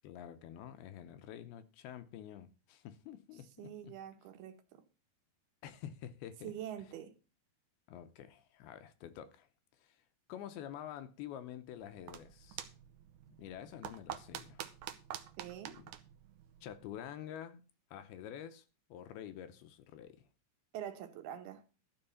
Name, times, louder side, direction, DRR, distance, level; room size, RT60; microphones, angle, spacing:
voice 1, 0.0-3.9 5.6-6.5 7.9-9.5 9.8-10.0 10.3-12.6 13.4-14.6 15.7-15.9 16.6-17.6 17.9-18.7 18.9-20.3, left 10 dB, 75° left, 2.5 m, -48 dB
voice 2, 3.6-4.8 6.4-7.1 15.4-15.8 20.7-21.6, right 10 dB, 75° right, 2.8 m, -45 dB
sound 1, 11.7-17.1, right 11 dB, 90° right, 1.8 m, -48 dB
13.0 x 4.8 x 7.0 m
omnidirectional pair, 4.8 m